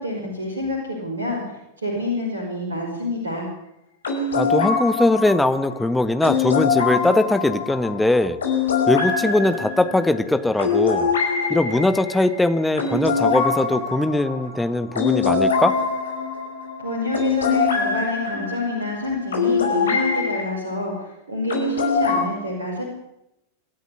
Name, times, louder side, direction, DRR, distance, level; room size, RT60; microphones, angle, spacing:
voice 1, 0.0-3.5 16.8-22.9, left 1 dB, 70° right, 0 dB, 5.6 m, -28 dB
sound 1, 4.0-20.4 21.5-22.2, left 5 dB, 70° left, 5.4 m, -23 dB
voice 2, 4.3-8.4 8.9-11.1 11.5-15.8, left 2 dB, 5° left, 10 dB, 1.5 m, -20 dB
26.0 x 13.0 x 9.7 m, 0.84 s
figure-of-eight pair, 90°, 0 cm